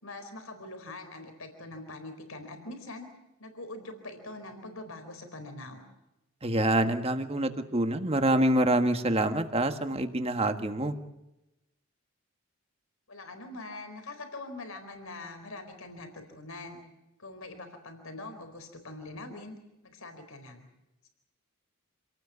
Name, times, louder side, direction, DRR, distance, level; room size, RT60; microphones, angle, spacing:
voice 1, 0.0-3.1 3.4-5.8 13.1-16.8 17.2-19.6 19.8-20.7, left 2 dB, 80° left, 7 dB, 4.3 m, -43 dB
voice 2, 6.4-10.9, right 1 dB, 30° right, 7 dB, 1.6 m, -26 dB
27.5 x 18.5 x 8.3 m, 0.94 s
head